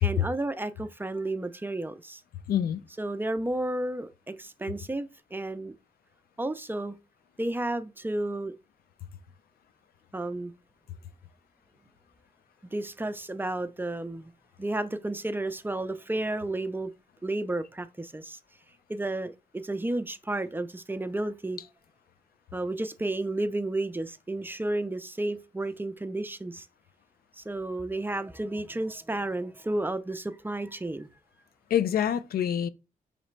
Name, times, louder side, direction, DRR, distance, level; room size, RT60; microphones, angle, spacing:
voice 1, 0.0-2.2 3.0-5.8 6.4-7.0 7.4-8.5 10.1-10.5 12.7-14.3 14.6-16.9 17.2-18.4 18.9-21.6 22.5-26.6 27.4-31.1, right 2 dB, 15° right, 0.4 m, -32 dB
voice 2, 2.5-2.8 31.7-32.7, left 10 dB, 90° left, 0.4 m, -25 dB
4.9 x 3.2 x 3.2 m
cardioid pair, 85°, 15 cm